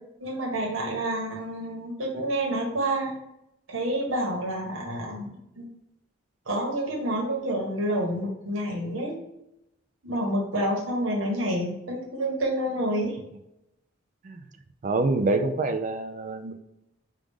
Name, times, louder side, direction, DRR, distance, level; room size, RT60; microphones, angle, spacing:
voice 1, 0.2-3.1 3.7-5.6 6.5-9.2 10.0-13.2, right 1 dB, 85° right, -1 dB, 1.3 m, -28 dB
voice 2, 14.8-16.6, right 2 dB, 40° right, 8 dB, 0.3 m, -26 dB
4.9 x 2.5 x 3.5 m, 0.84 s
head